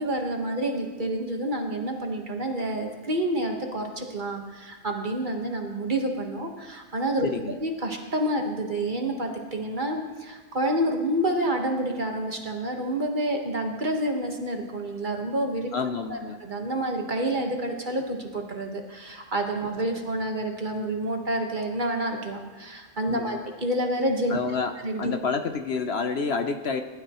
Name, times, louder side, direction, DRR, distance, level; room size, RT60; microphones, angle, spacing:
voice 1, 0.0-7.3 7.6-15.7 16.1-24.4 24.8-25.1, right 1 dB, 40° right, 2 dB, 1.4 m, -28 dB
voice 2, 7.2-7.6 15.7-16.4 23.1-23.5 24.3-26.8, left 5 dB, 60° left, 7 dB, 0.9 m, -29 dB
20.0 x 11.5 x 3.0 m, 1.4 s
omnidirectional pair, 1.3 m